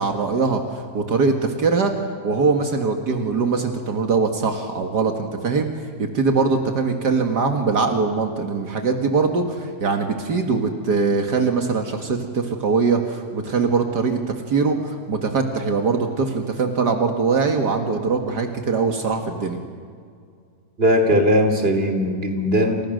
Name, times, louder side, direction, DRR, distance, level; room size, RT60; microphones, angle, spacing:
voice 1, 0.0-1.9 2.2-5.7 6.0-14.2 14.5-19.6, right 4 dB, 75° right, 4 dB, 2.4 m, -22 dB
voice 2, 20.8-22.8, equal, 35° right, 4 dB, 3.3 m, -19 dB
29.0 x 28.5 x 6.5 m, 2.2 s
omnidirectional pair, 1.8 m